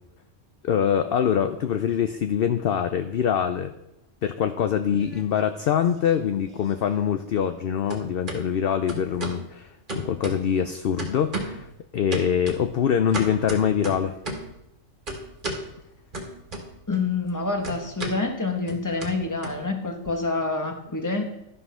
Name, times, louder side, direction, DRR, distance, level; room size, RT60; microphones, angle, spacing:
voice 1, 0.6-3.7 4.2-11.7 11.9-14.2, left 8 dB, 60° left, 8 dB, 0.7 m, -24 dB
sound 1, 4.9-5.7 6.0-7.6 7.9-8.4 8.9-9.4 9.9-10.7 11.0-11.7 12.1-14.5 15.1-15.7 16.1-17.0 17.2-20.1, right 1 dB, 40° right, 1.8 m, -35 dB
voice 2, 16.9-21.2, left 3 dB, 15° left, 4 dB, 1.1 m, -27 dB
12.5 x 5.5 x 5.6 m, 0.83 s
omnidirectional pair, 1.3 m